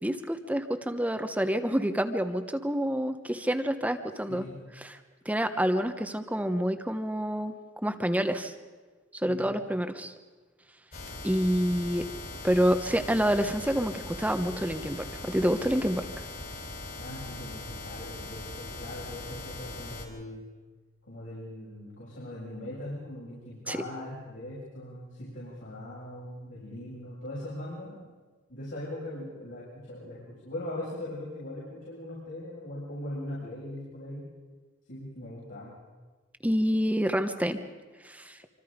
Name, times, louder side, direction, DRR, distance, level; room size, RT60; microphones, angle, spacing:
voice 1, 0.0-4.4 4.8-5.0 5.2-7.5 7.8-8.5 9.2-10.1 11.2-12.0 12.4-16.1 23.7-23.8 36.4-37.6 38.0-38.4, equal, 10° right, 8 dB, 1.1 m, -28 dB
sound 1, 10.9-20.1, left 2 dB, 50° left, 4.3 m, -40 dB
voice 2, 17.0-20.4 21.0-28.0 28.5-34.2 34.9-35.8, left 1 dB, 75° left, -9 dB, 7.4 m, -40 dB
26.0 x 25.5 x 5.2 m, 1.3 s
head